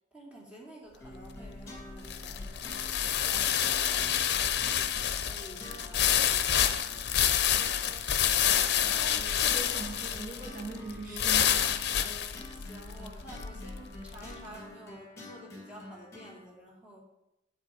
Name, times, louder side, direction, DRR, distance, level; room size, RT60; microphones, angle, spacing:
voice 1, 0.1-4.3 5.2-7.0 12.5-17.0, right 1 dB, 5° right, -5 dB, 2.7 m, -50 dB
sound 1, 1.0-16.4, left 1 dB, 15° left, 2.6 m, -48 dB
sound 2, 1.1-14.3, left 9 dB, 60° left, 0.6 m, -28 dB
voice 2, 8.5-11.6, right 2 dB, 50° right, 0 dB, 1.2 m, -41 dB
8.4 x 7.9 x 5.1 m, 0.89 s
head